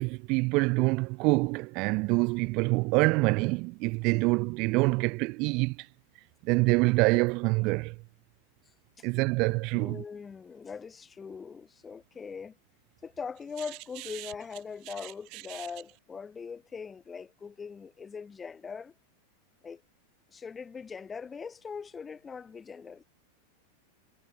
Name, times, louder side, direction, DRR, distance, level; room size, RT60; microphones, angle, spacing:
voice 1, 0.0-5.9 6.4-7.9 9.0-10.0 15.5-15.7, right 26 dB, 40° right, 1.4 m, -26 dB
voice 2, 8.6-9.1 9.7-12.6 13.0-18.9 19.6-19.8 20.3-23.0, left 5 dB, 15° left, 6.7 m, -41 dB
figure-of-eight pair, 90°, 0 cm